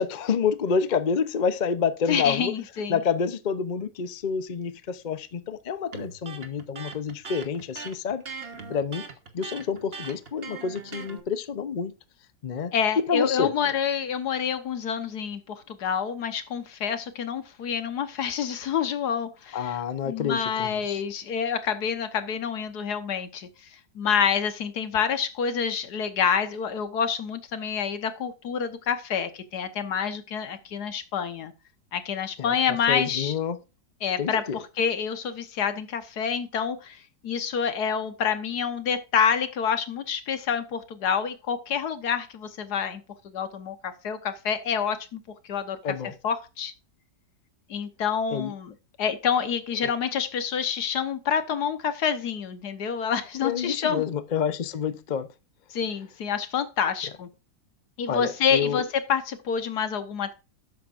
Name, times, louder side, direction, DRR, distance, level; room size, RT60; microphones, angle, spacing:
voice 1, 0.0-2.5 2.9-9.0 9.3-11.9 12.4-13.5 19.5-21.0 32.4-32.6 32.9-33.6 34.2-34.6 45.8-46.1 48.3-48.5 53.4-55.3 58.1-58.8, left 6 dB, 45° left, 0.6 m, -28 dB
voice 2, 2.1-3.0 12.7-19.8 20.0-31.5 31.9-33.3 34.0-45.8 46.2-46.7 47.7-54.0 55.7-57.3 58.0-60.3, left 7 dB, 70° left, 1.6 m, -28 dB
Electric guitar, 5.9-11.2, right 5 dB, 40° right, 1.4 m, -40 dB
12.0 x 8.5 x 2.5 m
omnidirectional pair, 1.8 m